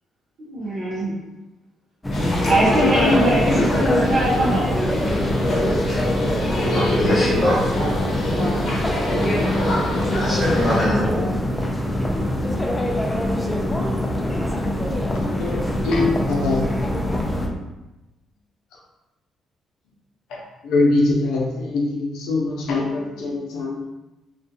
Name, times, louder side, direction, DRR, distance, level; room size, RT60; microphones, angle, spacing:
voice 1, 0.4-1.2 2.5-4.7, right 1 dB, 65° right, -7 dB, 0.6 m, -21 dB
sound 1, 2.0-17.5, left 1 dB, 10° left, 0.4 m, -24 dB
sound 2, 2.1-10.9, left 1 dB, 55° left, 0.7 m, -24 dB
voice 2, 6.7-7.6 10.2-11.3, left 1 dB, 30° left, -7 dB, 1.2 m, -23 dB
voice 3, 15.3-16.7 20.6-23.9, left 2 dB, 85° left, -2 dB, 0.5 m, -22 dB
2.4 x 2.3 x 2.6 m, 1.0 s
cardioid pair, 90°, 0 cm